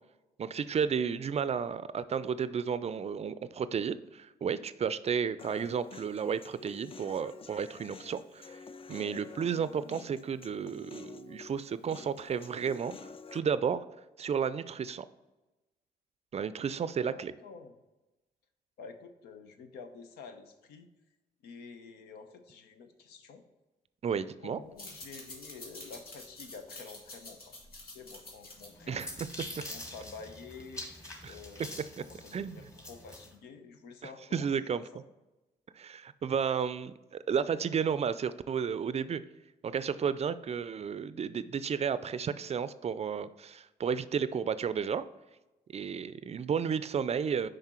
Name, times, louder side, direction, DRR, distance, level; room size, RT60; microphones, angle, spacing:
voice 1, 0.4-8.5 8.9-13.8 14.2-15.1 16.3-17.3 24.0-24.6 28.9-29.3 31.2-31.3 32.3-32.7 34.0-34.8 35.8-39.2 39.6-45.0 45.7-47.5, right 7 dB, 40° right, 15 dB, 0.4 m, -32 dB
Human voice, 5.4-13.4, left 5 dB, 35° left, 0.4 m, -49 dB
voice 2, 17.0-17.8 18.8-20.9 21.4-23.5 24.4-29.1 29.5-30.9 31.2-35.0, left 5 dB, 90° left, 7 dB, 0.7 m, -49 dB
sound 1, 24.6-29.8, left 2 dB, 70° left, 2.0 m, -48 dB
sound 2, 28.6-33.3, left 1 dB, 20° left, 1.8 m, -45 dB
5.9 x 5.0 x 4.4 m, 1.1 s
supercardioid pair, 65°, 16 cm